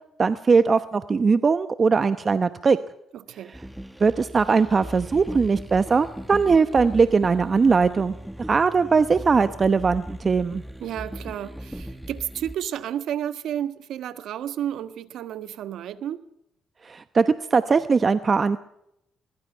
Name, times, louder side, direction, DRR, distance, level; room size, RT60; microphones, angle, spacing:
voice 1, 0.2-2.8 4.0-8.1 8.5-10.6 16.8-18.6, right 5 dB, 35° right, 0.9 m, -20 dB
voice 2, 3.1-3.5 10.8-16.2, right 10 dB, 80° right, 1.5 m, -32 dB
sound 1, 3.5-12.6, equal, 5° right, 1.8 m, -38 dB
22.5 x 22.0 x 5.7 m
cardioid pair, 90°, 0 cm